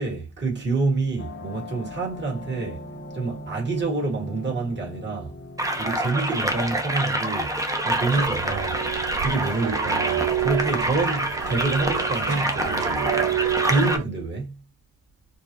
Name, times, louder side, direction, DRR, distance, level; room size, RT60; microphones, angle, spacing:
voice 1, 0.0-2.8 3.1-5.3 5.8-8.8 9.2-13.2 13.6-14.5, right 3 dB, 35° right, 2.1 m, -27 dB
sound 1, 1.2-8.3, equal, 35° left, 1.1 m, -40 dB
sound 2, 5.6-14.0, right 1 dB, 10° right, 1.0 m, -26 dB
sound 3, 8.1-14.0, right 12 dB, 55° right, 0.4 m, -29 dB
4.6 x 2.3 x 3.0 m
cardioid pair, 65°, 32 cm